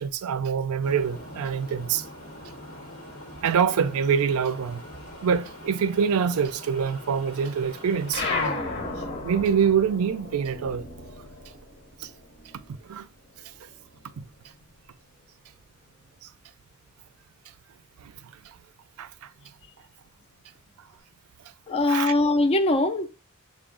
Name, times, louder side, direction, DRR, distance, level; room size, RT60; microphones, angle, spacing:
voice 1, 0.0-2.0 3.4-4.8 5.2-8.3 9.2-10.8 12.0-12.1 12.8-13.1 14.2-14.3 16.2-16.3 18.0-18.5 19.0-19.3 21.9-22.1, right 7 dB, 75° right, 0.4 m, -25 dB
sound 1, 0.8-8.5, left 1 dB, 70° left, 1.2 m, -43 dB
sound 2, 8.1-13.0 13.3-14.7, left 3 dB, 50° left, 1.0 m, -34 dB
voice 2, 21.7-23.1, left 2 dB, 25° left, 0.4 m, -22 dB
5.8 x 2.3 x 3.6 m
head